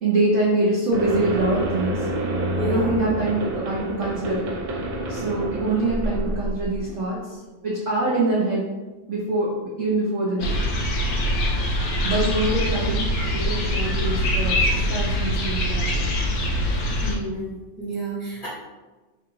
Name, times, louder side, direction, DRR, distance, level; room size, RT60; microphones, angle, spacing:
voice 1, 0.0-2.1 2.7-4.5 5.1-8.7 9.1-10.6 12.0-16.1, right 2 dB, 65° right, -5 dB, 0.7 m, -24 dB
sound 1, 0.9-7.0, right 1 dB, 85° right, 1.5 m, -28 dB
sound 2, 10.4-17.1, equal, 65° left, 1.1 m, -23 dB
voice 2, 17.0-18.5, right 1 dB, 35° left, -8 dB, 0.9 m, -30 dB
3.5 x 2.4 x 4.5 m, 1.2 s
omnidirectional pair, 2.0 m